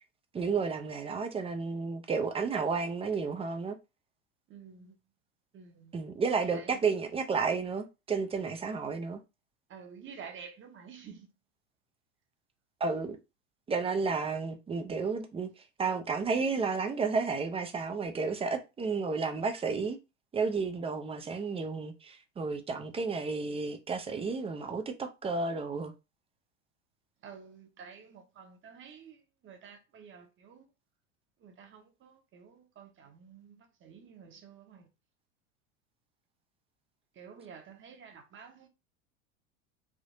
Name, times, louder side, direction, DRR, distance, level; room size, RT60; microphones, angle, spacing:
voice 1, 0.3-3.8 5.9-9.2 12.8-13.2 13.7-15.5 15.8-20.0 20.3-25.9, right 4 dB, 15° right, 0.4 m, -32 dB
voice 2, 4.5-5.0 5.5-5.9 6.4-6.8 9.7-11.3 27.2-30.7 31.4-34.9 37.1-38.7, right 6 dB, 30° right, 0.9 m, -50 dB
3.5 x 2.7 x 2.6 m
hypercardioid pair, 80°, 38 cm